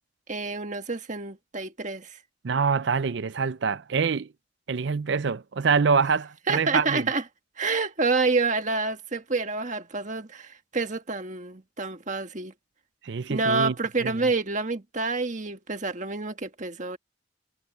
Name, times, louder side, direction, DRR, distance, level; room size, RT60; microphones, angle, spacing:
voice 1, 0.3-2.2 6.5-7.2 7.6-12.5 13.3-17.0, right 3 dB, 40° right, 1.6 m, -28 dB
voice 2, 2.4-4.3 4.7-7.1 13.0-13.7 14.0-14.1, right 5 dB, 60° right, 0.5 m, -25 dB
head